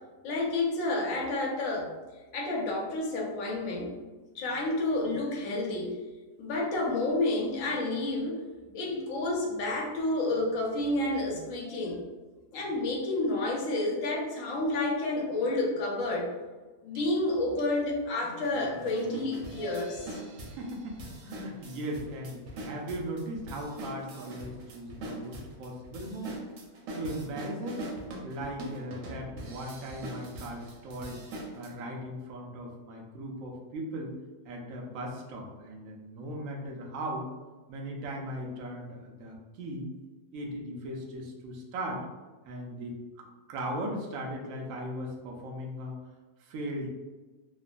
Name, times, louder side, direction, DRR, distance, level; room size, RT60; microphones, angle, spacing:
voice 1, 0.2-1.9 2.3-3.9 4.3-6.0 6.4-8.4 8.7-12.0 12.5-16.3 16.8-20.2, left 2 dB, 65° left, -2 dB, 0.9 m, -30 dB
sound 1, 16.9-17.0 17.6-17.7 18.2-31.7, right 1 dB, 90° right, 1.2 m, -42 dB
voice 2, 20.5-26.4 26.9-27.9 28.2-31.2 31.5-34.1 34.5-37.3 37.7-39.9 40.3-42.0 42.5-46.0 46.4-46.9, right 1 dB, 65° right, -1 dB, 0.8 m, -38 dB
3.0 x 2.1 x 2.4 m, 1.3 s
omnidirectional pair, 1.7 m